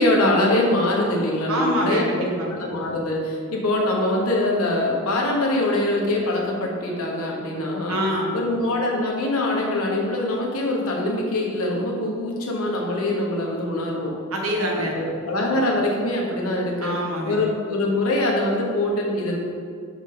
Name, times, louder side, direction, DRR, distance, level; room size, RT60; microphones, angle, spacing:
voice 1, 0.0-8.0 8.3-14.1 14.8-16.9 17.2-19.4, left 1 dB, 90° left, -1 dB, 1.3 m, -23 dB
voice 2, 1.5-2.5 7.9-8.3 14.3-14.9 16.8-17.4, equal, 80° right, -1 dB, 1.2 m, -25 dB
6.4 x 5.1 x 3.9 m, 2.2 s
head